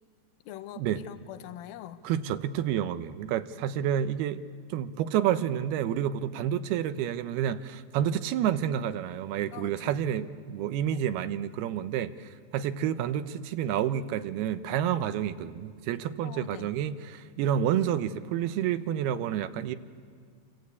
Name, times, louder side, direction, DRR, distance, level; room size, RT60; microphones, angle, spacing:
voice 1, 0.5-2.0 6.3-6.5 9.5-9.9 10.9-11.0 16.2-16.7, left 12 dB, 75° left, 10 dB, 2.7 m, -44 dB
voice 2, 2.0-4.4 4.7-19.8, right 10 dB, 85° right, 11 dB, 2.9 m, -29 dB
29.0 x 25.0 x 8.2 m, 2.1 s
omnidirectional pair, 4.4 m